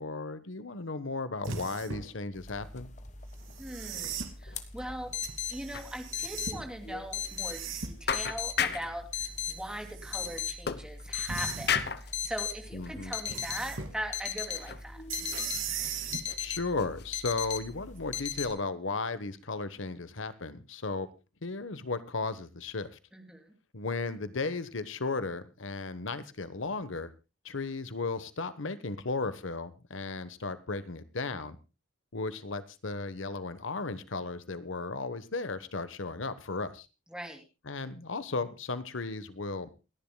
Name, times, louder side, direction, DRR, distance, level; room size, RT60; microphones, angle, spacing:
voice 1, 0.0-2.9 12.7-13.1 16.4-21.1 21.4-23.0 23.7-27.1 27.4-31.6 32.1-36.9 37.7-39.7, left 3 dB, 75° left, 14 dB, 1.1 m, -35 dB
sound 1, 1.4-2.1 3.4-4.3 5.2-6.6 7.2-8.1 9.2-10.4 11.3-11.9 13.3-13.9 15.1-16.2 18.0-18.1, right 6 dB, 85° right, 2.8 m, -39 dB
sound 2, 2.4-18.5, left 8 dB, 35° left, 1.4 m, -38 dB
voice 2, 3.6-5.1 5.5-15.0 23.1-23.5 37.1-37.4, right 1 dB, 5° right, 4 dB, 2.7 m, -40 dB
sound 3, 4.5-4.9 5.1-5.2 5.7-5.9 6.3-6.4 6.9-7.0 7.7-7.8 8.1-9.0 10.7-11.3 11.7-12.1 12.8-13.0 13.5-13.6 14.4-14.9 15.1-16.4 16.8-17.1, left 7 dB, 50° left, 0.9 m, -34 dB
28.5 x 10.5 x 2.2 m, 0.28 s
head